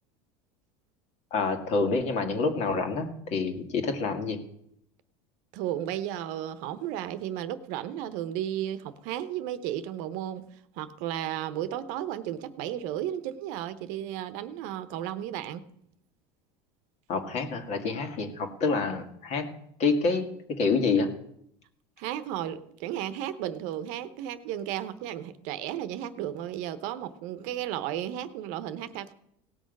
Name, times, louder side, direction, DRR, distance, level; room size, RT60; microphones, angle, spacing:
voice 1, 1.3-4.4 17.1-19.5 19.8-20.3 20.6-21.1, left 4 dB, 50° left, 2.0 m, -27 dB
voice 2, 5.5-15.6 22.0-29.1, right 11 dB, 65° right, 0.9 m, -34 dB
18.0 x 6.4 x 5.3 m
supercardioid pair, 105°, 14 cm